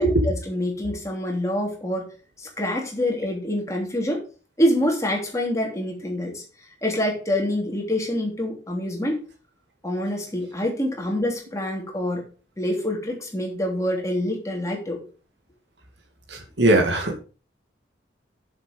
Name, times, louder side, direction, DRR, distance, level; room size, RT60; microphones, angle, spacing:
voice 1, 0.0-2.1 2.4-4.2 4.6-6.4 6.8-9.2 9.8-12.2 12.6-15.0, left 1 dB, 15° left, 0 dB, 3.0 m, -26 dB
voice 2, 16.3-17.2, right 1 dB, 75° right, 3 dB, 2.5 m, -20 dB
7.6 x 7.3 x 5.3 m, 0.35 s
head